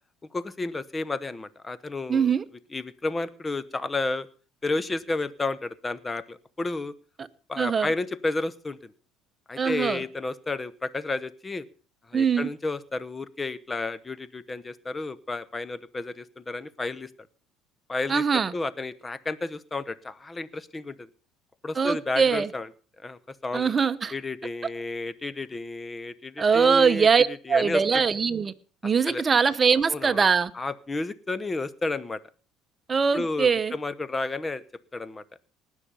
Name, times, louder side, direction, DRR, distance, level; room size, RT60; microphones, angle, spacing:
voice 1, 0.3-2.3 2.7-4.3 4.6-6.9 7.5-8.9 9.5-11.6 12.1-17.1 17.9-18.2 18.5-21.1 21.6-22.7 23.0-23.7 24.1-28.0 29.1-29.2 29.9-30.2 30.5-32.2 33.1-34.6 34.9-35.2, left 3 dB, 20° left, 17 dB, 0.9 m, -32 dB
voice 2, 2.1-2.4 7.6-7.9 9.6-10.0 12.1-12.5 18.1-18.5 21.8-22.5 23.5-24.1 26.4-28.5 28.8-30.5 32.9-33.7, right 6 dB, 30° right, 12 dB, 0.9 m, -22 dB
19.0 x 6.6 x 5.6 m, 0.40 s
supercardioid pair, 95°, 0 cm